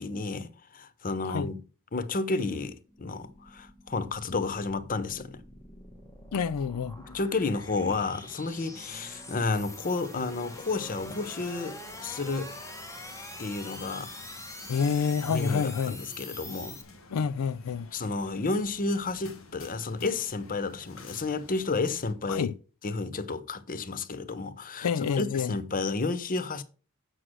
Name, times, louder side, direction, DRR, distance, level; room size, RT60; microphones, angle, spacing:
voice 1, 0.0-1.6 1.9-5.4 7.1-12.5 13.4-14.1 15.3-16.8 17.9-22.5 22.8-26.6, left 3 dB, 40° left, 0.8 m, -31 dB
sound 1, 2.9-16.8, left 1 dB, 15° left, 1.2 m, -45 dB
voice 2, 6.3-7.0 14.7-16.0 17.1-17.9 22.3-22.5 24.8-25.6, left 6 dB, 90° left, 0.4 m, -28 dB
sound 2, 10.1-22.1, left 2 dB, 60° left, 1.6 m, -52 dB
8.0 x 6.3 x 6.2 m
head